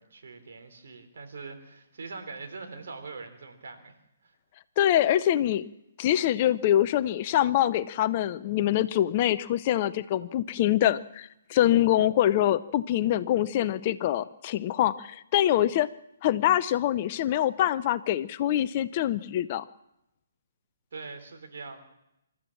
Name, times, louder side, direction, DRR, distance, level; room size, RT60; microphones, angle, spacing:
voice 1, 0.0-4.0 4.2-4.3 20.9-21.8, right 4 dB, 55° right, 6 dB, 3.5 m, -42 dB
voice 2, 4.8-5.7 6.0-15.9 16.2-19.6, left 12 dB, 35° left, 15 dB, 0.6 m, -24 dB
26.0 x 13.5 x 7.4 m, 0.87 s
figure-of-eight pair, 130°, 0 cm